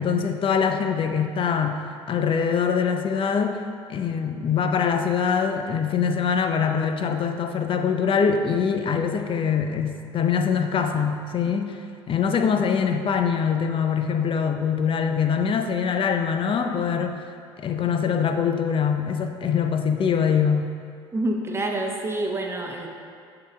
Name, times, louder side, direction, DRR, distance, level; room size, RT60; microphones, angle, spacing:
voice 1, 0.0-1.8 2.1-3.6 3.9-11.8 12.1-17.2 17.6-20.8, left 6 dB, 40° left, 6 dB, 0.6 m, -23 dB
voice 2, 21.1-22.9, right 1 dB, 20° right, 1 dB, 0.9 m, -27 dB
6.7 x 3.9 x 4.9 m, 2.3 s
hypercardioid pair, 75°, 13 cm